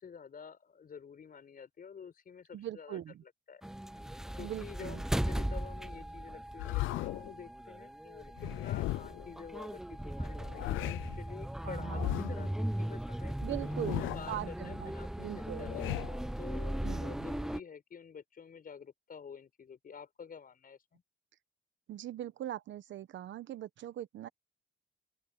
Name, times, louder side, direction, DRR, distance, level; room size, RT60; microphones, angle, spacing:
voice 1, 0.0-3.0 3.5-3.6 4.3-13.4 14.0-16.0 16.4-21.0, left 6 dB, 45° left, 5.2 m, -49 dB
voice 2, 2.5-3.2 4.4-5.0 11.6-12.1 13.4-14.9 15.2-15.7 16.8-17.3 21.9-24.3, right 12 dB, 70° right, 1.2 m, -41 dB
sound 1, 3.6-17.6, right 1 dB, ahead, 0.3 m, -38 dB
sound 2, 6.6-7.3 8.4-9.3 10.3-11.2 11.9-12.5 13.6-14.4 15.4-16.3, left 18 dB, 85° left, 0.4 m, -37 dB
open air
cardioid pair, 90°, 20 cm